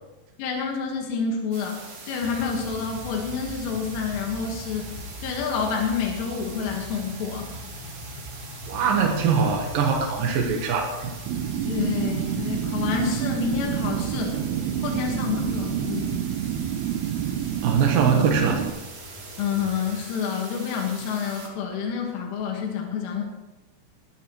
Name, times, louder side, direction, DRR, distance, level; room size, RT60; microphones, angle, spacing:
voice 1, 0.4-4.9 5.2-7.5 11.7-14.4 14.8-16.2 19.4-23.2, left 6 dB, 85° left, 1 dB, 4.2 m, -28 dB
sound 1, 1.5-21.5, right 3 dB, 40° right, 1.9 m, -42 dB
sound 2, 2.2-19.9, equal, 45° left, 2.4 m, -42 dB
voice 2, 8.7-11.1 17.6-18.7, right 6 dB, 70° right, 0 dB, 2.2 m, -22 dB
sound 3, 11.3-18.7, right 10 dB, 90° right, 2.2 m, -28 dB
20.5 x 13.0 x 3.1 m, 1.0 s
omnidirectional pair, 5.5 m